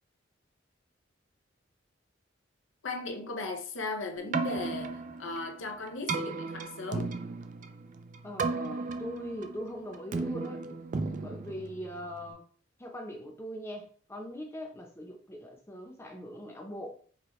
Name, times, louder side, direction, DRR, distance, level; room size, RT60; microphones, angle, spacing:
voice 1, 2.8-7.2, left 2 dB, 90° left, 0.6 m, -37 dB
Keyboard (musical), 4.2-12.3, right 3 dB, 40° right, 0.3 m, -35 dB
voice 2, 8.2-10.6 11.2-12.4 12.8-17.0, equal, 15° left, 0.7 m, -41 dB
4.7 x 2.2 x 3.1 m
head